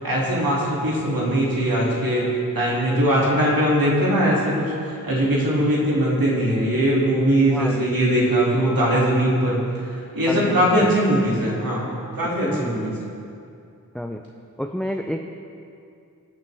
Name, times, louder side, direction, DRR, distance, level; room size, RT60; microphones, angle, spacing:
voice 1, 0.0-2.3 2.5-11.9 12.2-13.0, equal, 75° right, -5 dB, 2.6 m, -21 dB
voice 2, 7.5-7.9 10.3-10.9 12.4-13.1 13.9-14.2 14.6-15.2, equal, ahead, 4 dB, 0.5 m, -29 dB
20.5 x 7.3 x 3.5 m, 2.5 s
wide cardioid pair, 50°, 35 cm